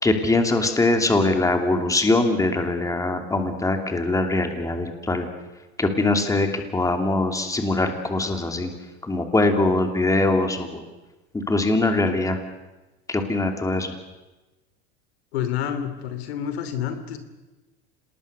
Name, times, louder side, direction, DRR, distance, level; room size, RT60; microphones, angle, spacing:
voice 1, 0.0-5.3 5.8-8.7 9.0-10.8 11.3-12.4 13.1-13.9, left 2 dB, 10° left, 5 dB, 2.8 m, -22 dB
voice 2, 15.3-17.2, left 9 dB, 85° left, 9 dB, 2.9 m, -28 dB
27.0 x 20.0 x 6.7 m, 1.1 s
supercardioid pair, 110°, 31 cm